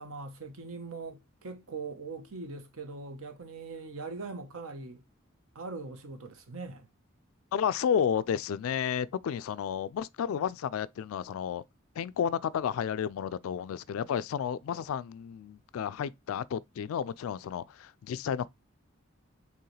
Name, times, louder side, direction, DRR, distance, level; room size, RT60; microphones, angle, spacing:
voice 1, 0.0-5.0 5.5-6.9, right 4 dB, 85° right, 0.9 m, -41 dB
voice 2, 7.5-11.6 12.0-18.5, left 8 dB, 80° left, 0.3 m, -32 dB
4.6 x 3.5 x 3.2 m
head